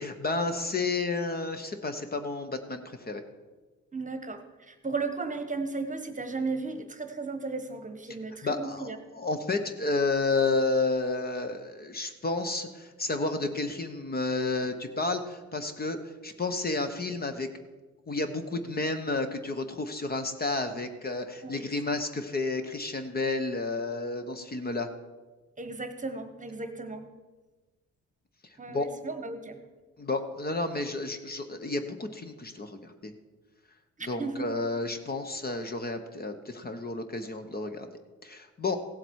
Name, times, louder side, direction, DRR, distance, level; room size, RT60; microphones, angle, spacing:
voice 1, 0.0-3.2 8.4-17.5 18.1-24.9 28.7-28.9 30.0-33.1 34.0-37.9 38.2-38.8, left 3 dB, 30° left, 8 dB, 1.0 m, -31 dB
voice 2, 3.9-9.0 21.4-21.7 25.6-27.1 28.6-29.6 34.0-34.5, right 3 dB, 25° right, 8 dB, 1.2 m, -35 dB
16.0 x 7.6 x 4.7 m, 1.3 s
cardioid pair, 90°, 30 cm